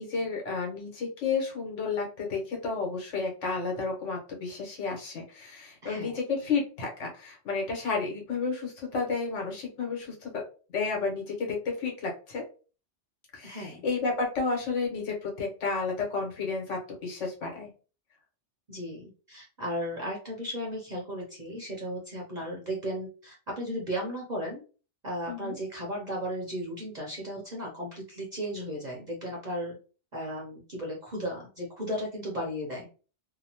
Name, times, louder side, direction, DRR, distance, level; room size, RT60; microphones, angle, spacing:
voice 1, 0.0-10.4 10.7-12.4 13.3-17.7 25.3-25.5, left 4 dB, 85° left, 0 dB, 1.3 m, -31 dB
voice 2, 5.8-6.2 13.4-13.8 18.7-24.6 25.0-29.8 30.1-32.9, equal, 45° right, -3 dB, 0.8 m, -35 dB
2.8 x 2.1 x 2.8 m, 0.36 s
omnidirectional pair, 1.2 m